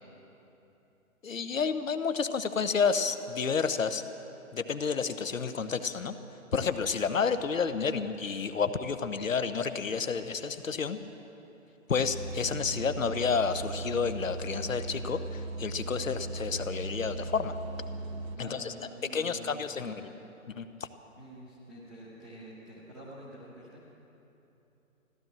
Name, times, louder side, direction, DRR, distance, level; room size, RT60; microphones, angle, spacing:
voice 1, 1.2-4.0 4.5-6.2 6.5-11.0 11.9-17.6 18.4-18.7 19.1-20.1 20.5-20.7, left 5 dB, 65° left, 11 dB, 1.0 m, -30 dB
sound 1, 11.9-18.4, right 2 dB, 70° right, 1.1 m, -38 dB
voice 2, 18.3-20.1 21.2-23.9, right 1 dB, ahead, -12 dB, 0.5 m, -48 dB
15.0 x 12.5 x 7.5 m, 3.0 s
figure-of-eight pair, 135°, 42 cm